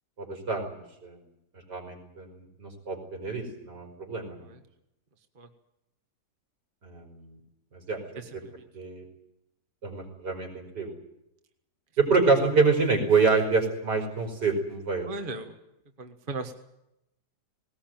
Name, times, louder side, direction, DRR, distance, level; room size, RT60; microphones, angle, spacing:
voice 1, 0.2-1.2 1.7-4.5 6.8-7.4 7.7-8.0 8.7-9.1 9.8-10.9 12.0-15.1, right 4 dB, 70° right, 2 dB, 5.8 m, -27 dB
voice 2, 8.1-8.6 15.1-15.6 16.0-16.5, right 3 dB, 30° right, 6 dB, 1.7 m, -38 dB
19.5 x 19.0 x 9.2 m, 0.84 s
omnidirectional pair, 1.9 m